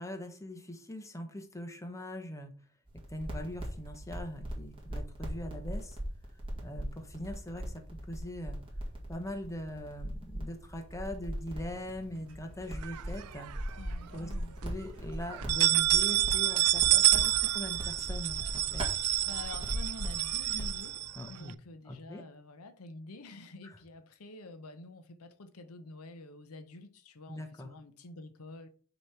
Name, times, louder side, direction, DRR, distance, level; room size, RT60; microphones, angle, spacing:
voice 1, 0.0-2.5 3.1-6.0 6.6-8.6 9.1-13.5 14.1-14.3 14.6-18.8 21.2-21.5 21.9-22.2 27.3-27.7, left 1 dB, 15° left, 0.9 m, -41 dB
sound 1, 2.9-20.8, equal, 25° right, 1.9 m, -40 dB
sound 2, 11.6-21.3, left 2 dB, 70° right, 1.2 m, -60 dB
sound 3, 12.8-13.7 14.2-14.3 14.6-14.7 15.3-21.5, right 16 dB, 85° right, 0.4 m, -28 dB
voice 2, 13.8-14.6 19.2-20.9 21.2-28.7, left 2 dB, 85° left, 0.8 m, -48 dB
6.2 x 3.1 x 5.7 m
head